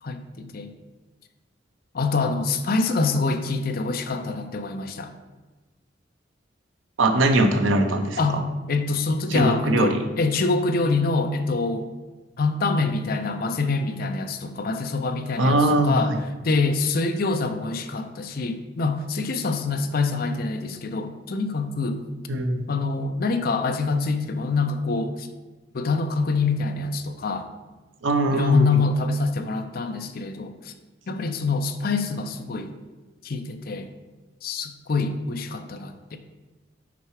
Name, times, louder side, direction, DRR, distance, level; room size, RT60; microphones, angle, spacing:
voice 1, 0.0-0.7 1.9-5.1 8.2-8.4 8.7-11.9 12.4-16.1 16.4-22.0 22.7-25.3 25.7-27.5 28.3-30.7 31.1-32.7 33.2-33.9 34.4-36.2, left 3 dB, 50° left, 7 dB, 0.5 m, -25 dB
voice 2, 7.0-8.5 9.3-10.0 15.4-16.2 22.3-22.7 28.0-28.7, right 1 dB, 90° right, 6 dB, 0.7 m, -21 dB
5.9 x 4.7 x 4.7 m, 1.2 s
head